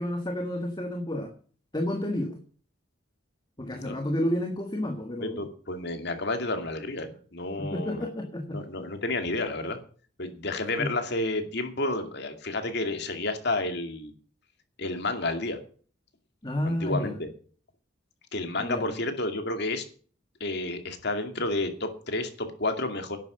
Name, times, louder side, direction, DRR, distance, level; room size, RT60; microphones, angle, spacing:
voice 1, 0.0-1.3 1.7-2.4 3.6-5.4 7.6-8.6 10.8-10.9 16.4-17.2 18.6-18.9, left 1 dB, 25° left, 5 dB, 1.6 m, -30 dB
voice 2, 3.6-4.0 5.2-8.1 8.5-9.8 10.2-14.1 14.8-15.6 16.6-17.3 18.3-19.8 20.4-23.2, left 2 dB, 60° left, 7 dB, 2.4 m, -31 dB
11.0 x 9.3 x 6.9 m, 0.42 s
head